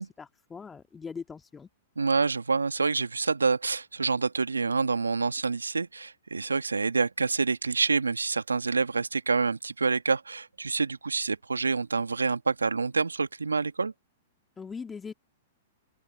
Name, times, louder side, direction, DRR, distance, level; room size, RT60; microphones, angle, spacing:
voice 1, 0.0-1.7 14.6-15.1, left 5 dB, 15° left, 2.3 m, -41 dB
voice 2, 2.0-13.9, right 4 dB, 85° right, 1.7 m, -27 dB
open air
figure-of-eight pair, 105°, 0 cm